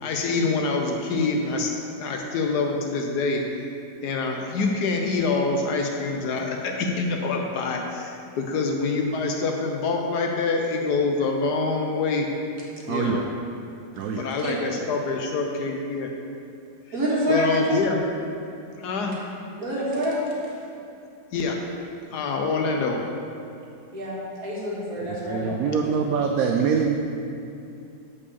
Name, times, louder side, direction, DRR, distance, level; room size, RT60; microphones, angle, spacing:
voice 1, 0.0-1.7 2.0-3.4 4.0-12.3 12.9-13.2 14.1-16.1 17.3-18.0 18.8-19.1 21.3-21.6 22.1-23.0, left 3 dB, 70° left, 2 dB, 1.2 m, -26 dB
voice 2, 12.9-13.2 14.0-14.2 25.3-27.0, right 6 dB, 75° right, 2 dB, 0.8 m, -24 dB
voice 3, 16.9-17.7 19.6-20.2 23.9-25.9, equal, 50° right, -6 dB, 2.2 m, -26 dB
6.7 x 5.4 x 6.8 m, 2.6 s
omnidirectional pair, 2.0 m